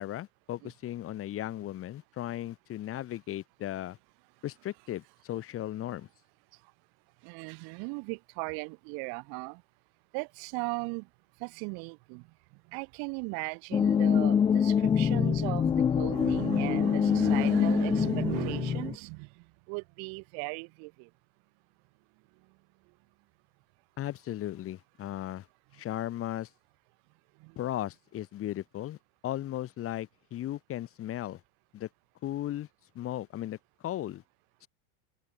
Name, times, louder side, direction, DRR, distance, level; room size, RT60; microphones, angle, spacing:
voice 1, 0.0-4.0 4.4-6.1 24.0-25.5 25.7-26.5 27.6-29.0 29.2-31.4 31.7-31.9 32.2-32.7 33.0-33.6 33.8-34.2 34.6-34.7, left 13 dB, 30° left, 1.8 m, -36 dB
voice 2, 7.2-9.6 10.1-11.1 11.4-12.3 12.7-21.1 27.4-27.6, right 34 dB, 50° right, 4.4 m, -37 dB
sound 1, 13.7-18.9, left 7 dB, 10° left, 0.4 m, -25 dB
supercardioid pair, 140°, 46 cm